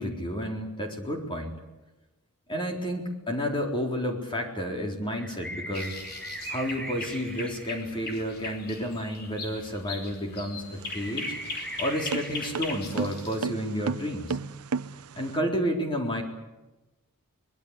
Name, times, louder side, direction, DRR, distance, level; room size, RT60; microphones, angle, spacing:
voice 1, 0.0-1.6 2.5-6.0 6.5-11.4 11.8-14.4 15.2-16.2, equal, 25° left, 2 dB, 4.1 m, -31 dB
sound 1, 5.1-8.1 10.9-12.5, right 1 dB, 5° left, 7.2 m, -39 dB
sound 2, 5.7-13.4, left 3 dB, 45° left, 5.0 m, -40 dB
sound 3, 10.6-15.4, right 5 dB, 80° right, 0.8 m, -34 dB
24.5 x 22.0 x 8.3 m, 1.1 s
head